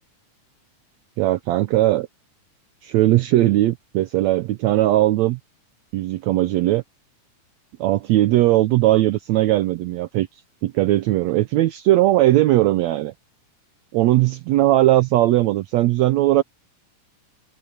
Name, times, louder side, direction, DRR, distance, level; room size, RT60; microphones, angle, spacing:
voice 1, 1.2-2.1 2.8-5.4 5.9-6.8 7.8-10.3 10.6-13.1 13.9-16.4, right 15 dB, 80° right, 1.7 m, -18 dB
omnidirectional pair, 3.7 m